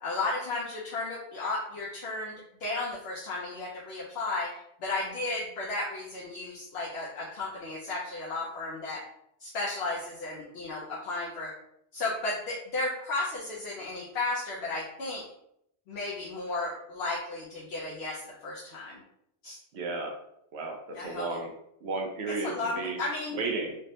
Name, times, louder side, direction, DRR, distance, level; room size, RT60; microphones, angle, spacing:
voice 1, 0.0-2.3 2.6-4.5 4.8-9.0 9.4-11.5 11.9-15.2 15.9-19.0 19.4-19.6 20.9-21.4 22.3-23.4, left 2 dB, 70° left, -5 dB, 0.8 m, -34 dB
voice 2, 19.7-20.1 20.5-21.5 21.8-23.0 23.3-23.8, right 3 dB, 75° right, 2 dB, 0.8 m, -33 dB
3.3 x 2.1 x 2.7 m, 0.76 s
omnidirectional pair, 1.1 m